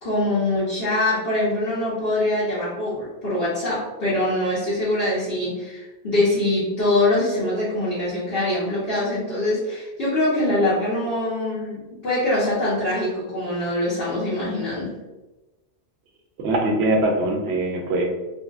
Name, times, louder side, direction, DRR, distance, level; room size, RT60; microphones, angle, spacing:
voice 1, 0.0-14.9, left 1 dB, 55° left, -10 dB, 1.1 m, -23 dB
voice 2, 16.4-18.1, right 2 dB, 65° right, 1 dB, 0.8 m, -22 dB
2.8 x 2.7 x 2.4 m, 1.1 s
omnidirectional pair, 1.2 m